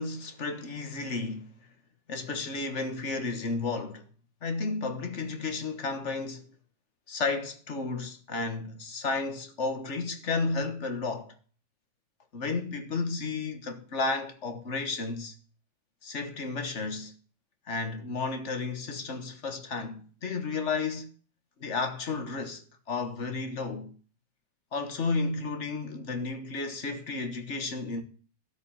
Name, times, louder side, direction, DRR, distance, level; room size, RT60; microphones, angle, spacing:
voice 1, 0.0-1.5 2.1-4.0 4.4-6.5 7.1-11.3 12.3-15.3 16.0-17.1 17.7-21.1 21.6-23.9 24.7-28.0, left 3 dB, 45° left, 1.5 m, -32 dB
12.0 x 5.5 x 8.8 m
omnidirectional pair, 1.9 m